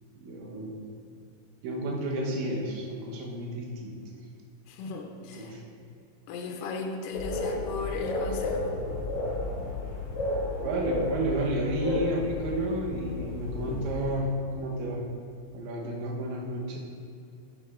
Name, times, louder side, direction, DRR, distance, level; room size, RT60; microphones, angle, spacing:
voice 1, 0.2-0.9 1.6-4.0 5.3-5.6 10.6-15.0 15.5-16.8, right 1 dB, 70° right, -2 dB, 2.5 m, -31 dB
voice 2, 4.7-5.6 6.3-8.8 15.8-15.9, left 4 dB, 75° left, 2 dB, 2.2 m, -36 dB
sound 1, 7.1-14.2, left 2 dB, 60° left, 2.4 m, -32 dB
9.1 x 8.3 x 2.4 m, 2.4 s
omnidirectional pair, 4.2 m